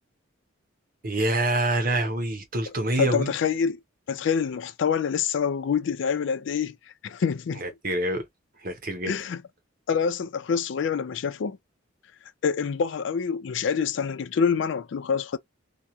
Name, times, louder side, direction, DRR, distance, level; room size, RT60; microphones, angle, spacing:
voice 1, 1.0-3.3 7.6-8.2 8.6-9.2, right 1 dB, 45° right, 0.7 m, -26 dB
voice 2, 2.7-3.8 4.1-6.8 7.0-7.6 9.1-9.4 9.9-11.6 12.4-15.4, left 6 dB, 65° left, 0.4 m, -26 dB
2.9 x 2.3 x 2.4 m
head